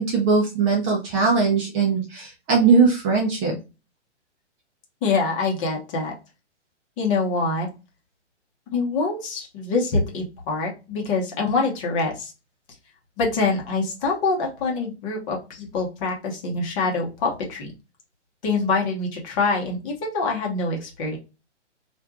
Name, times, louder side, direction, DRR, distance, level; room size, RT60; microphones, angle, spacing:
voice 1, 0.0-3.6, right 4 dB, 20° right, -2 dB, 0.6 m, -20 dB
voice 2, 5.0-6.1 7.0-7.7 8.7-12.3 13.2-17.7 18.4-21.2, left 3 dB, 25° left, 0 dB, 1.0 m, -25 dB
4.4 x 2.6 x 2.3 m, 0.29 s
figure-of-eight pair, 120°, 36 cm